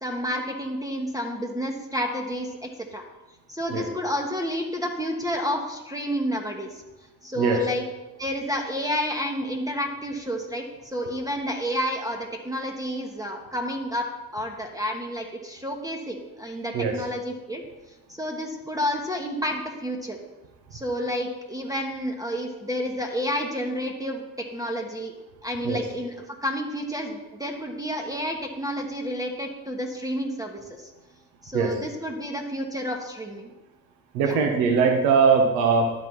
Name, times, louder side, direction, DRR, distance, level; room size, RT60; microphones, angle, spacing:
voice 1, 0.0-3.0 3.5-6.8 7.2-7.8 8.2-14.1 14.3-17.6 18.2-20.2 20.7-24.2 24.5-25.1 25.4-30.9 31.4-33.5 34.2-34.4, equal, 10° right, 1 dB, 1.1 m, -30 dB
voice 2, 34.1-35.9, right 5 dB, 70° right, 3 dB, 1.0 m, -21 dB
10.5 x 4.0 x 4.6 m, 1.1 s
hypercardioid pair, 50°, 45 cm